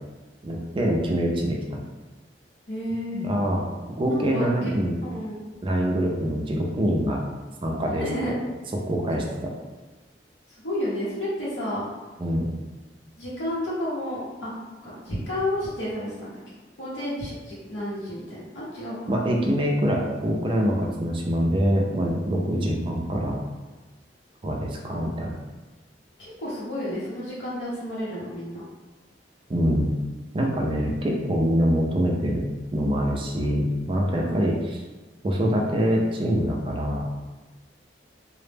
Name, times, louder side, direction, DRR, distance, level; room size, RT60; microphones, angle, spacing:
voice 1, 0.4-1.8 3.1-5.0 5.6-7.2 7.6-8.1 8.7-9.3 12.2-12.5 19.1-23.4 24.4-25.3 29.5-29.9 30.3-32.4 32.7-34.8 35.2-37.1, equal, 30° right, 0 dB, 0.3 m, -24 dB
voice 2, 2.7-3.3 4.1-4.7 5.0-5.4 8.0-8.4 10.6-11.9 13.2-14.5 14.8-16.4 16.8-19.0 22.5-22.8 26.2-28.6 34.1-34.5, left 1 dB, 85° left, -9 dB, 0.7 m, -31 dB
2.0 x 2.0 x 3.2 m, 1.2 s
head